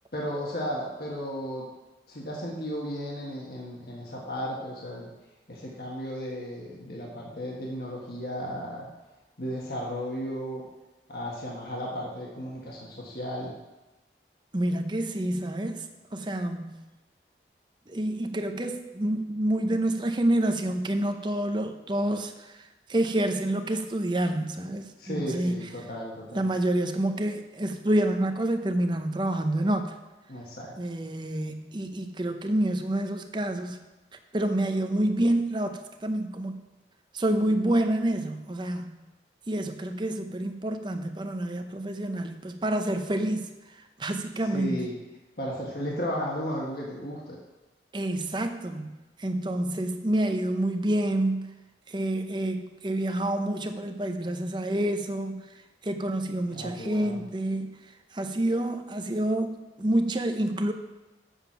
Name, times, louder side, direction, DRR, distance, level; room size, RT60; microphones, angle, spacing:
voice 1, 0.1-1.7 2.1-5.1 5.5-8.9 9.4-10.6 11.1-13.5 25.0-26.5 30.3-30.8 44.4-44.9 45.4-47.4 56.5-57.2, equal, 60° left, -3 dB, 1.5 m, -34 dB
voice 2, 14.5-15.9 16.1-16.8 17.9-22.6 22.9-25.7 26.3-29.9 30.8-33.8 34.3-36.6 37.1-38.9 39.5-43.5 44.0-44.9 47.9-48.9 49.2-51.5 51.9-55.4 55.8-57.8 58.1-60.7, right 1 dB, 25° right, 6 dB, 0.7 m, -28 dB
7.8 x 7.2 x 5.7 m, 1.1 s
head